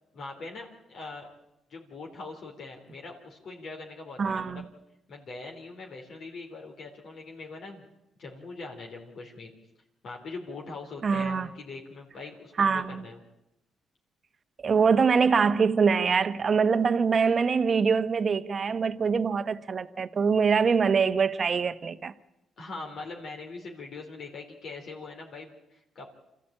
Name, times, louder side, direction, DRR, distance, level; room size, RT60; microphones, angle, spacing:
voice 1, 0.1-1.3 1.7-4.6 5.1-7.9 8.2-9.5 10.0-13.2 22.6-26.1, left 3 dB, 60° left, 3.7 m, -42 dB
voice 2, 4.2-4.6 11.0-11.5 12.6-13.0 14.6-22.1, right 5 dB, 45° right, 1.1 m, -24 dB
26.5 x 14.5 x 8.8 m
cardioid pair, 90°, 0 cm